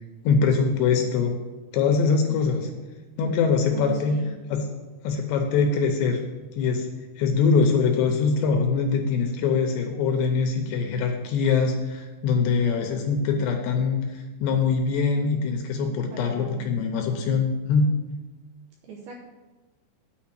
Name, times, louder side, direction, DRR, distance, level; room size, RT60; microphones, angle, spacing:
voice 1, 0.2-1.4 1.7-2.7 3.2-4.2 4.5-4.7 5.0-6.2 6.6-6.9 7.2-17.9, left 5 dB, 80° left, 4 dB, 2.6 m, -23 dB
voice 2, 2.2-2.7 3.7-4.3 15.9-16.7 18.9-19.2, right 4 dB, 75° right, 0 dB, 2.4 m, -39 dB
9.4 x 4.6 x 7.3 m, 1.2 s
omnidirectional pair, 5.5 m